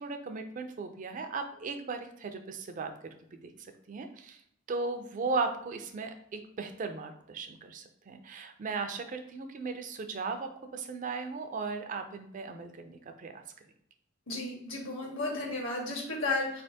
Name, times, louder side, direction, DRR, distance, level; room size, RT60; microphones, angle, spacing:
voice 1, 0.0-2.9 3.3-3.5 3.9-4.4 4.7-13.4, right 4 dB, 40° right, 7 dB, 0.4 m, -37 dB
voice 2, 14.3-16.6, left 2 dB, 65° left, -3 dB, 1.5 m, -33 dB
4.2 x 3.3 x 2.7 m, 0.71 s
head